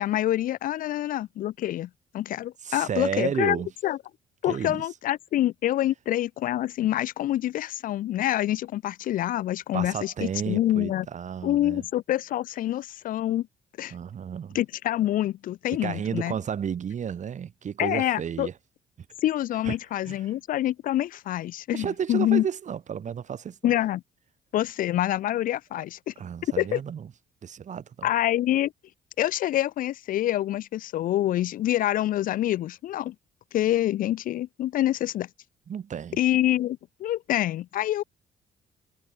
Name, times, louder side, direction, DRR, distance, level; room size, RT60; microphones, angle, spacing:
voice 1, 0.0-4.0 4.4-11.1 11.4-13.5 13.8-13.9 14.5-16.3 17.8-18.5 19.2-22.5 23.6-24.0 24.5-26.1 26.6-26.8 28.0-28.7 29.2-33.1 33.5-35.3 36.2-38.0, left 13 dB, 60° left, 0.4 m, -26 dB
voice 2, 2.6-3.7 4.5-4.8 9.7-11.8 13.9-14.6 15.8-18.5 19.6-19.7 20.1-20.3 21.7-23.7 26.2-27.1 27.4-28.1 35.7-36.2, right 8 dB, 50° right, 3.9 m, -32 dB
cardioid pair, 100°, 16 cm